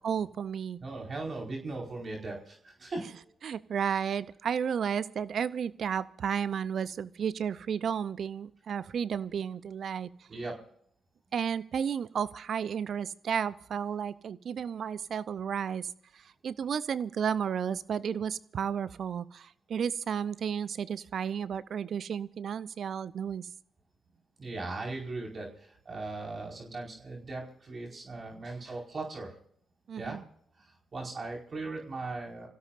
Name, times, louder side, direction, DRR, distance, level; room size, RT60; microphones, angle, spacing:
voice 1, 0.0-0.8 3.4-10.1 11.3-23.5 29.9-30.2, right 7 dB, 60° right, 18 dB, 0.6 m, -33 dB
voice 2, 0.8-3.2 10.3-10.6 24.4-29.3 30.0-30.2 30.6-32.5, right 3 dB, 45° right, 0 dB, 5.0 m, -38 dB
27.0 x 16.5 x 2.6 m, 0.66 s
hypercardioid pair, 40°, 0 cm